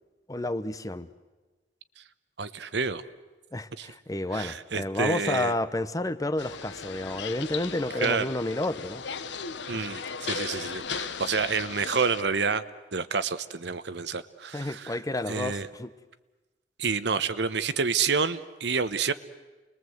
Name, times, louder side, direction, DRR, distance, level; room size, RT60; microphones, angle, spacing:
voice 1, 0.3-1.1 3.5-9.0 9.7-9.8 14.5-15.9, left 1 dB, 20° left, 0.7 m, -30 dB
voice 2, 2.4-3.0 3.8-3.9 4.3-5.5 8.0-8.3 9.7-12.6 12.9-15.0 15.3-15.7 16.8-19.1, right 5 dB, 70° right, 0.9 m, -28 dB
sound 1, 6.4-12.2, left 5 dB, 80° left, 1.0 m, -36 dB
29.0 x 21.0 x 7.9 m
head